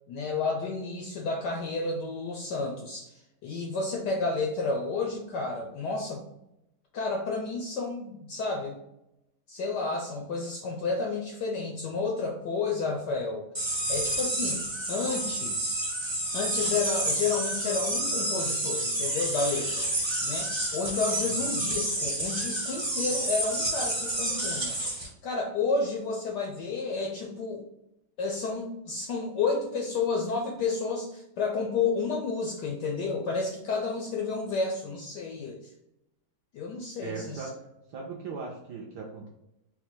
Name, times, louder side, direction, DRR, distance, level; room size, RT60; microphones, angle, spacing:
voice 1, 0.1-6.2 6.9-8.8 9.5-13.5 13.9-15.9 16.3-19.9 20.2-24.8 25.2-27.6 28.2-35.7 36.5-37.5, left 4 dB, 75° left, 0 dB, 1.0 m, -31 dB
sound 1, 13.5-25.1, right 1 dB, 20° right, 0.7 m, -30 dB
voice 2, 37.0-37.5 37.9-39.3, right 4 dB, 70° right, -1 dB, 1.0 m, -38 dB
4.0 x 2.2 x 4.4 m, 0.85 s
omnidirectional pair, 2.3 m